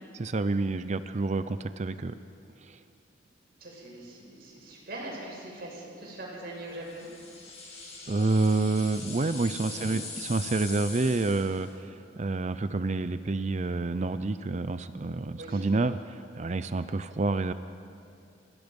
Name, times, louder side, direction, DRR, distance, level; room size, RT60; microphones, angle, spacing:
voice 1, 0.1-2.1 2.6-2.8 8.1-17.5, right 3 dB, 40° right, 12 dB, 0.5 m, -28 dB
voice 2, 3.6-7.1 9.6-10.0 15.4-15.6, right 1 dB, 55° right, -2 dB, 6.5 m, -42 dB
sound 1, 6.8-11.7, left 3 dB, 40° left, 6.0 m, -42 dB
28.5 x 17.0 x 5.4 m, 2.6 s
head